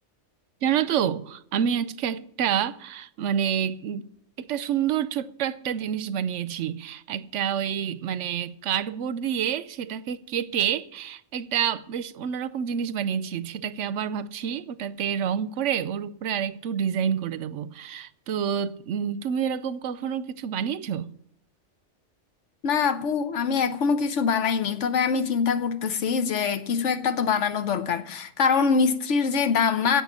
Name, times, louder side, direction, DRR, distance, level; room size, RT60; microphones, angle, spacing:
voice 1, 0.6-4.1 4.4-21.1, right 8 dB, 80° right, 1.0 m, -28 dB
voice 2, 22.6-30.0, left 6 dB, 80° left, 1.2 m, -24 dB
10.5 x 8.1 x 9.7 m
omnidirectional pair, 1.2 m